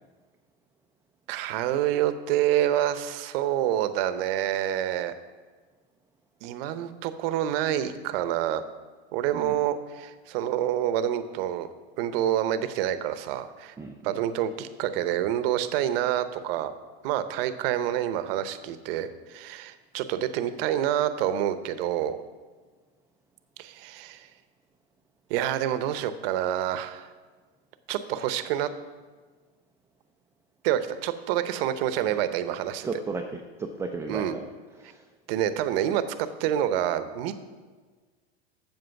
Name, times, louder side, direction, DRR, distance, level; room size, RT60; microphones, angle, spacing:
voice 1, 1.3-5.1 6.4-8.6 9.1-11.7 12.0-13.7 14.0-16.7 17.0-22.2 23.6-24.3 25.3-27.1 27.9-28.7 30.6-32.9 34.1-34.3 35.3-36.0 36.4-37.3, right 11 dB, 60° right, 12 dB, 0.8 m, -27 dB
voice 2, 9.3-9.7 13.8-14.2 32.1-32.3 32.8-35.1, right 3 dB, 10° right, 3 dB, 0.4 m, -36 dB
7.9 x 7.3 x 5.8 m, 1.4 s
hypercardioid pair, 115°, 33 cm